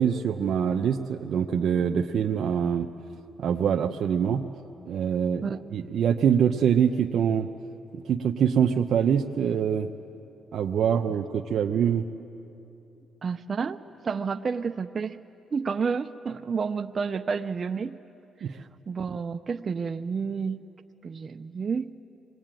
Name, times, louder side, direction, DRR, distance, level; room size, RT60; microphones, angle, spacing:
voice 1, 0.0-2.9 3.4-4.4 4.8-7.5 7.9-9.9 10.5-12.1 18.4-18.5, right 8 dB, 65° right, 3 dB, 0.8 m, -24 dB
voice 2, 13.2-15.2 15.5-18.0 18.9-20.6 21.0-21.9, right 5 dB, 40° right, 8 dB, 0.6 m, -30 dB
26.0 x 22.0 x 9.1 m, 2.8 s
cardioid pair, 90°, 0 cm